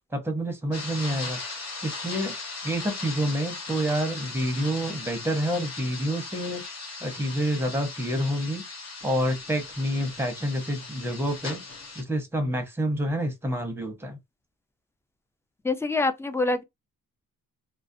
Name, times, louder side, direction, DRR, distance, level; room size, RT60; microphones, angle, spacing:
voice 1, 0.1-1.4 1.8-2.4 2.6-6.6 7.0-8.7 9.0-11.6 11.9-14.2, equal, 5° right, 0.7 m, -28 dB
sound 1, 0.7-12.0, left 3 dB, 50° left, 0.8 m, -38 dB
voice 2, 15.6-16.6, left 3 dB, 10° left, 0.3 m, -25 dB
2.4 x 2.0 x 2.5 m
cardioid pair, 85°, 34 cm